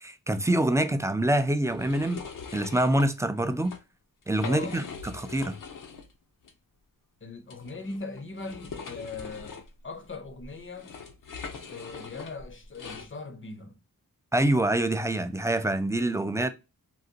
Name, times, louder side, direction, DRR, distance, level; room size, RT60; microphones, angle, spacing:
voice 1, 0.0-2.2 2.5-3.7 4.3-4.8 5.1-5.6 14.3-16.5, right 1 dB, 10° right, 0.3 m, -25 dB
sound 1, 1.7-3.1 3.5-3.8 4.2-6.1 6.4-6.5 7.5-13.1, left 5 dB, 70° left, 0.7 m, -42 dB
voice 2, 4.4-4.8 7.2-10.9 11.7-13.8, left 3 dB, 35° left, 0.6 m, -40 dB
3.8 x 2.1 x 2.6 m
wide cardioid pair, 75°, 34 cm